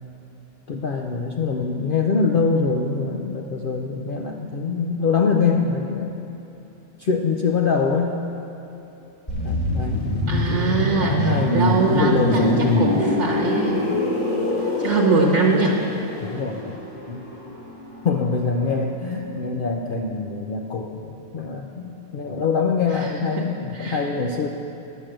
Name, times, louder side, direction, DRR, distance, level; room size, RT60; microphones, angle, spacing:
voice 1, 0.7-6.2 7.0-8.2 9.4-13.0 16.2-16.8 17.1-17.3 18.0-24.5, left 4 dB, 80° left, 1 dB, 0.4 m, -24 dB
sound 1, 9.3-18.9 19.2-19.4, left 1 dB, 25° left, 1.9 m, -25 dB
voice 2, 10.3-13.9 14.6-15.8 22.9-23.5 23.7-24.0, right 3 dB, 55° right, -2 dB, 1.2 m, -23 dB
10.0 x 6.4 x 7.6 m, 3.0 s
omnidirectional pair, 1.6 m